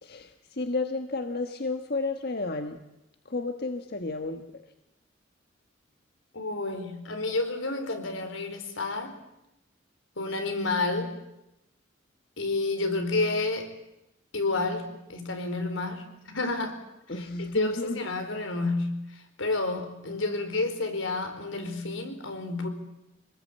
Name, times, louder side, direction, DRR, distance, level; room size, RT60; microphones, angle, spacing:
voice 1, 0.0-2.8 3.2-4.5 17.1-18.0, left 3 dB, 55° left, 6 dB, 1.4 m, -32 dB
voice 2, 6.3-9.1 10.2-11.1 12.4-13.7 14.3-16.8 17.1-22.7, left 2 dB, 90° left, 7 dB, 4.4 m, -30 dB
26.0 x 20.0 x 8.7 m, 0.89 s
head